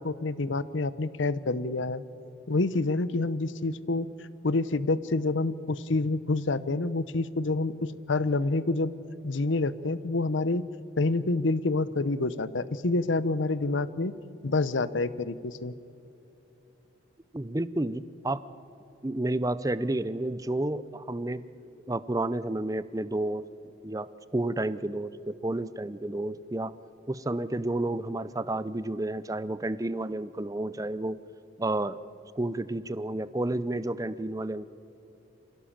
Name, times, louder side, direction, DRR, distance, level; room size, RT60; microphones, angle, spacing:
voice 1, 0.0-2.0 2.5-4.1 4.4-8.9 9.2-10.7 11.0-14.1 14.4-15.7, left 3 dB, 75° left, 17 dB, 0.8 m, -27 dB
voice 2, 17.3-18.4 19.0-21.4 21.9-23.4 23.8-26.7 27.1-31.2 31.6-32.0 32.4-34.7, right 1 dB, 15° right, 15 dB, 0.5 m, -31 dB
25.5 x 16.5 x 7.3 m, 2.9 s
head